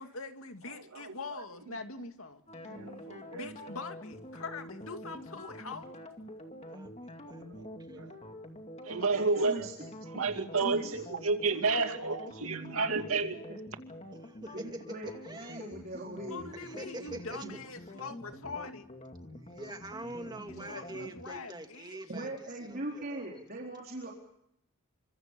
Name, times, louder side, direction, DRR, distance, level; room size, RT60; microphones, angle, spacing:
voice 1, 0.0-2.4 3.3-5.9 16.3-18.9 20.7-22.0, left 4 dB, 75° left, 2.4 m, -43 dB
voice 2, 0.7-1.1 2.7-3.5 7.4-8.2 8.8-9.7 10.1-13.3 20.6-20.7, right 4 dB, 80° right, 2.5 m, -31 dB
sound 1, 2.5-21.2, left 1 dB, 30° left, 2.4 m, -47 dB
voice 3, 6.7-8.0 10.5-10.7 11.4-11.6 14.1-15.6 16.5-17.6 17.9-18.0 19.4-23.4, right 2 dB, 20° right, 2.2 m, -45 dB
voice 4, 9.1-9.9 10.6-10.9 12.9-13.6 14.5-17.6 22.1-24.1, right 1 dB, 45° right, 4.2 m, -41 dB
29.0 x 25.0 x 5.3 m
head